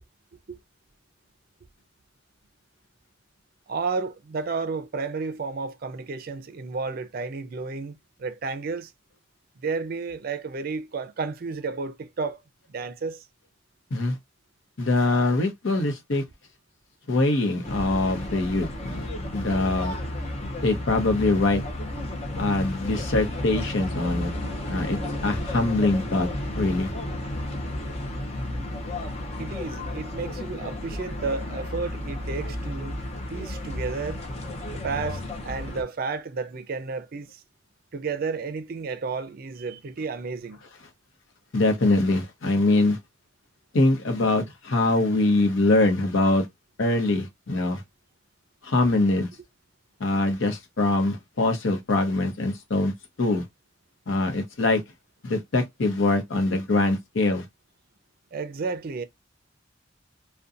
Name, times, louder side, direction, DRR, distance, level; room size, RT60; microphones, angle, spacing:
voice 1, 3.7-8.9 9.6-12.4 12.7-13.3 29.4-33.0 33.3-34.2 34.7-37.4 37.9-40.6 58.3-59.0, right 4 dB, 50° right, 0.4 m, -32 dB
voice 2, 14.8-16.2 17.1-20.0 20.6-21.6 22.3-24.3 24.7-26.3 26.6-26.9 41.5-43.0 43.7-46.5 46.8-47.8 48.6-49.3 50.0-52.9 53.2-53.4 54.1-54.8 55.2-57.4, left 2 dB, 75° left, 0.8 m, -23 dB
sound 1, 17.6-35.8, left 1 dB, 35° left, 0.6 m, -32 dB
2.7 x 2.2 x 2.4 m
head